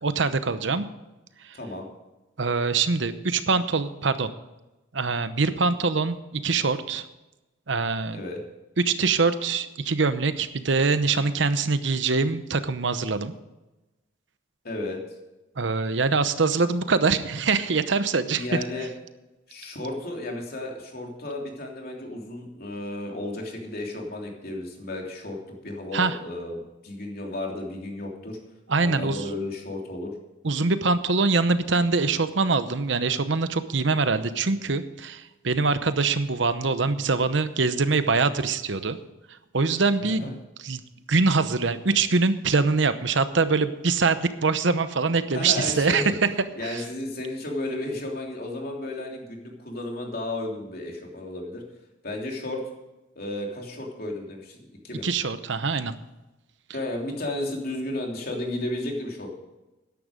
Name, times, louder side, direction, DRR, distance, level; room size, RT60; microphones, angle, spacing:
voice 1, 0.0-0.9 1.4-1.6 2.4-4.3 4.9-7.1 7.7-8.2 8.8-13.3 15.6-18.6 25.9-26.2 28.7-29.2 30.4-39.0 39.5-40.3 40.6-40.8 41.1-46.0 46.7-46.8 55.0-55.9, right 4 dB, 65° right, 12 dB, 0.9 m, -24 dB
voice 2, 1.5-1.9 8.1-8.4 14.6-15.0 18.2-18.9 19.5-25.4 25.6-28.4 28.8-30.1 40.1-40.3 45.3-46.1 46.6-51.6 52.0-52.6 53.1-54.6 54.8-55.0 56.7-59.3, left 1 dB, 50° left, 0 dB, 3.2 m, -33 dB
13.5 x 10.5 x 5.1 m, 1.0 s
head